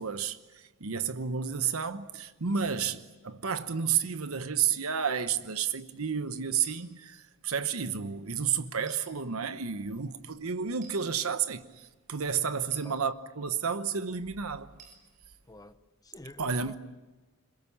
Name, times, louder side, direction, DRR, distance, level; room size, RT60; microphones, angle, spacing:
voice 1, 0.0-14.7 16.4-16.8, right 7 dB, 80° right, 1.0 m, -31 dB
sound 1, 6.6-6.8 8.9-9.0 10.8-11.0 12.7-12.9 14.8-15.0, right 5 dB, 40° right, 6.0 m, -52 dB
voice 2, 15.5-16.8, left 1 dB, 20° left, 0.9 m, -49 dB
26.5 x 22.5 x 8.5 m
head